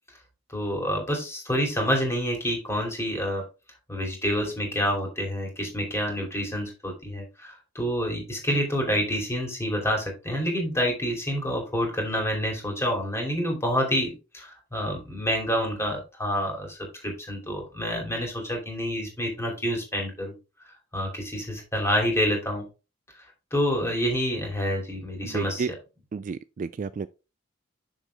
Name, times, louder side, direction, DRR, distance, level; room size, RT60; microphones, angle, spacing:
voice 1, 0.5-3.4 3.9-20.3 20.9-22.6 23.5-25.8, equal, 15° left, 2.7 m, -28 dB
voice 2, 25.2-25.7 26.1-27.1, right 5 dB, 40° right, 0.3 m, -31 dB
6.4 x 6.4 x 3.4 m
head